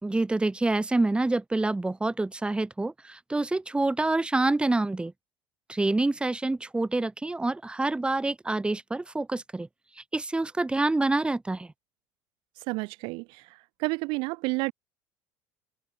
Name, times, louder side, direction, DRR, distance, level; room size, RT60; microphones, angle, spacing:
voice 1, 0.0-5.1 5.7-9.7 10.1-11.7, right 2 dB, 10° right, 2.5 m, -27 dB
voice 2, 12.7-13.4 13.8-14.7, right 26 dB, 75° right, 3.6 m, -30 dB
supercardioid pair, 100°, 9 cm